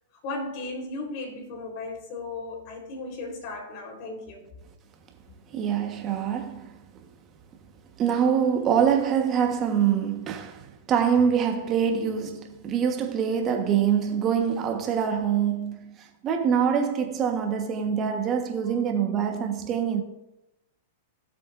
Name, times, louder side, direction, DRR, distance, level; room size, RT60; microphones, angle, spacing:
voice 1, 0.2-4.4, left 2 dB, 50° left, 3.8 m, -35 dB
voice 2, 5.5-6.7 8.0-20.0, right 7 dB, 30° right, 1.3 m, -25 dB
16.5 x 7.7 x 2.6 m
hypercardioid pair, 135°, 0 cm